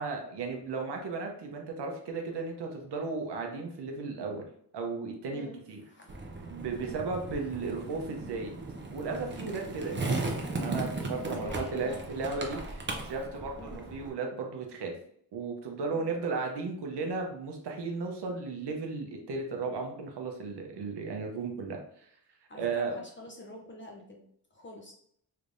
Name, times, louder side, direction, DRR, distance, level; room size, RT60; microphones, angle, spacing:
voice 1, 0.0-4.4 4.7-5.8 6.5-8.5 8.9-15.0 15.3-22.1 22.6-22.9, right 4 dB, 80° right, 2 dB, 0.7 m, -35 dB
voice 2, 5.3-6.2 6.8-7.0 11.1-12.1 13.6-13.9 16.0-16.1 22.5-24.2 24.5-24.9, left 1 dB, 30° left, 0 dB, 0.5 m, -47 dB
Skateboard, 6.1-14.1, right 2 dB, 30° right, 0.5 m, -37 dB
3.3 x 3.2 x 2.5 m, 0.66 s
wide cardioid pair, 160°, 40 cm